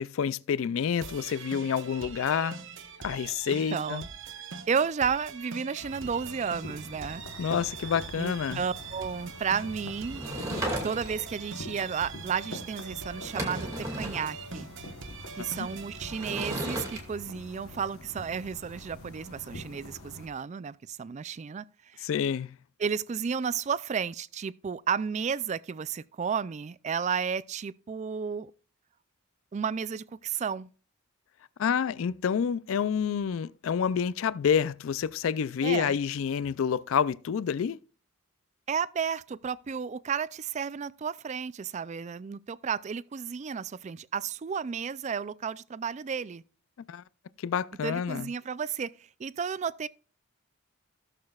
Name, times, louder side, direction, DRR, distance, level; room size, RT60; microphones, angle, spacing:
voice 1, 0.0-2.6 3.0-4.0 7.4-8.6 15.6-15.7 22.0-22.6 31.6-37.8 46.9-47.0 47.4-48.3, left 7 dB, 70° left, 0.3 m, -28 dB
sound 1, 1.0-17.0, right 5 dB, 60° right, 1.1 m, -43 dB
voice 2, 3.7-4.1 4.7-7.2 8.2-10.2 10.8-13.7 14.0-14.7 15.4-21.6 21.9-22.1 22.8-28.5 29.5-30.7 35.6-36.0 38.7-46.4 47.8-48.9 49.2-49.9, right 6 dB, 35° right, 0.3 m, -32 dB
sound 2, 5.8-20.3, left 1 dB, 85° left, 1.2 m, -45 dB
Sliding door / Wood, 10.1-11.3 12.8-12.9 13.2-14.3 16.1-17.0, right 1 dB, 15° right, 2.2 m, -34 dB
17.0 x 6.7 x 2.3 m
head